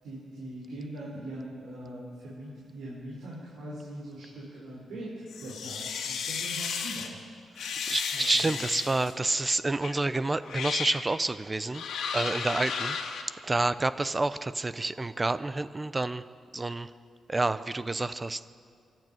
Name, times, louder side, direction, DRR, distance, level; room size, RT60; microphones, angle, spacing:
voice 1, 0.0-7.2 8.1-8.6, right 1 dB, 90° right, -6 dB, 5.4 m, -41 dB
sound 1, 5.3-7.1 7.6-9.1 9.8-10.0 10.4-11.0 11.7-13.2, left 6 dB, 85° left, 2.1 m, -34 dB
voice 2, 7.6-11.8 12.1-13.0 13.4-16.2 16.5-16.9 17.3-18.4, right 2 dB, 20° right, 14 dB, 0.7 m, -29 dB
25.0 x 12.0 x 9.2 m, 2.3 s
cardioid pair, 105°, 0 cm